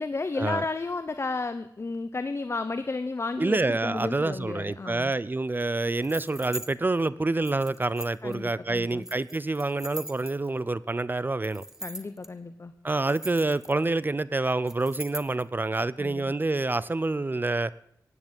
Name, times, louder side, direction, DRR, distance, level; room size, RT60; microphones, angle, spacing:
voice 1, 0.0-5.1 8.2-9.1 11.8-12.7 16.0-16.3, left 3 dB, 40° left, 0.9 m, -33 dB
voice 2, 3.4-11.6 12.8-17.7, right 2 dB, 30° right, 0.6 m, -27 dB
sound 1, 6.0-6.7 7.4-8.3 9.0-10.6 11.4-12.3 12.9-14.0 14.7-15.4, right 1 dB, 5° right, 1.5 m, -40 dB
16.0 x 9.9 x 8.9 m
wide cardioid pair, 105°, 7 cm